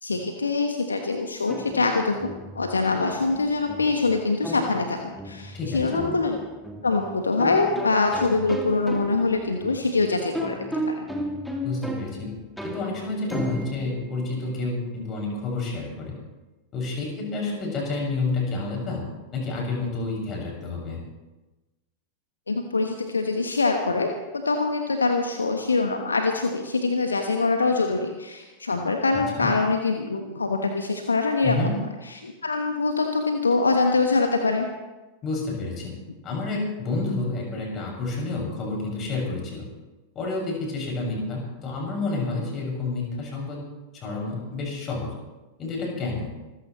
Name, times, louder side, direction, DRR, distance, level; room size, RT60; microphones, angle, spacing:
voice 1, 0.0-5.0 5.2-6.4 6.8-11.1 22.5-24.1 24.4-31.6 32.2-34.7, left 3 dB, 75° left, 4 dB, 1.3 m, -24 dB
sound 1, 1.5-15.1, equal, ahead, 2.5 m, -35 dB
voice 2, 5.5-6.0 11.6-12.3 12.6-16.2 16.7-19.0 19.3-21.0 29.4-29.5 31.4-31.7 35.2-36.0 36.2-39.7 40.1-43.6 44.0-45.1 45.6-46.3, left 3 dB, 30° left, -1 dB, 6.7 m, -29 dB
25.5 x 15.0 x 3.2 m, 1.1 s
figure-of-eight pair, 90°, 0 cm